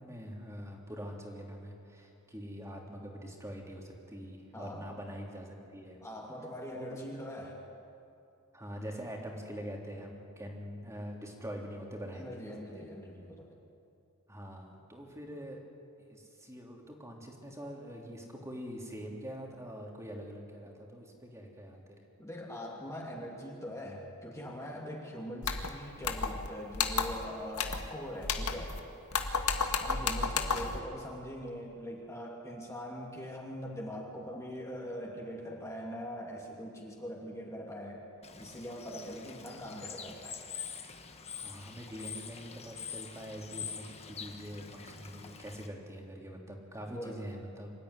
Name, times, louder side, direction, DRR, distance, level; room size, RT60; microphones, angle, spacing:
voice 1, 0.0-6.0 6.7-7.0 8.5-12.5 14.3-15.6 16.1-21.8 41.4-47.7, equal, 15° right, 0 dB, 3.3 m, -44 dB
voice 2, 4.5-4.9 6.0-7.6 12.1-13.5 20.6-20.7 22.2-28.8 29.8-38.0 38.3-40.4 46.9-47.2, equal, 15° left, -2 dB, 2.8 m, -42 dB
sound 1, 25.4-25.7 26.0-26.5 26.7-27.2 27.6-27.9 28.2-28.8 29.1-30.8, left 5 dB, 75° left, 1.7 m, -32 dB
Bird / Water, 38.2-45.7, left 7 dB, 30° left, 1.4 m, -45 dB
26.0 x 13.5 x 9.9 m, 2.6 s
head